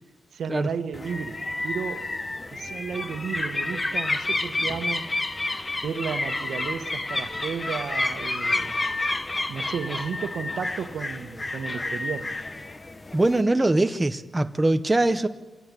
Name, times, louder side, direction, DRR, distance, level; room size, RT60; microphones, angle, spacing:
voice 1, 0.3-2.1 2.5-5.1 5.8-8.7 9.5-12.3, right 6 dB, 80° right, 1.4 m, -33 dB
sound 1, 0.9-13.4, left 2 dB, 20° left, 1.0 m, -30 dB
voice 2, 13.1-15.3, right 2 dB, 15° right, 0.7 m, -22 dB
26.0 x 18.0 x 9.0 m
wide cardioid pair, 175°, 0 cm